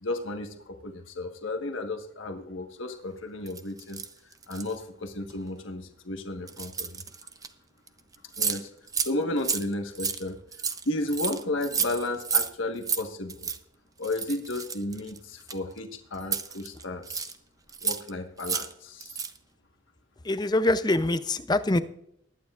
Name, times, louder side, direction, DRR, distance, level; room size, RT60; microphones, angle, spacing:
voice 1, 0.0-4.0 4.5-7.0 8.4-8.7 9.0-10.4 10.8-13.5 14.0-17.3 17.8-19.2, left 2 dB, 85° left, 4 dB, 1.4 m, -33 dB
sound 1, 3.5-4.8 5.3-5.5 6.5-7.5 7.9-8.0 8.1-8.6 8.9-9.1 9.4-12.5 12.8-13.0 13.3-13.6 14.0-15.8 16.2-17.4 17.7-18.1 18.4-18.7 19.0-19.4, right 6 dB, 20° right, 0.6 m, -31 dB
voice 2, 20.2-21.8, left 2 dB, 20° left, 12 dB, 0.5 m, -24 dB
20.5 x 9.6 x 2.5 m, 0.72 s
head